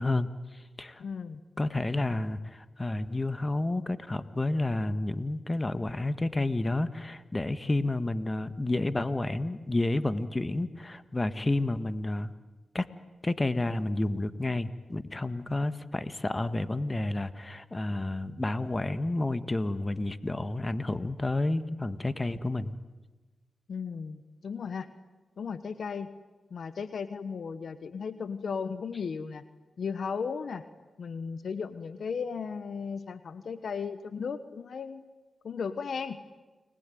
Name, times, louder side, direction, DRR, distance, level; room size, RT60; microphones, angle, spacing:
voice 1, 0.0-1.0 1.6-12.3 12.7-12.9 13.2-22.7, left 2 dB, 30° left, 12 dB, 1.7 m, -30 dB
voice 2, 1.0-1.4 23.7-24.9 25.4-26.1 26.5-29.4 29.8-30.6 31.0-35.0 35.4-36.2, left 6 dB, 70° left, 13 dB, 1.1 m, -35 dB
30.0 x 21.0 x 9.4 m, 1.2 s
supercardioid pair, 40°, 0 cm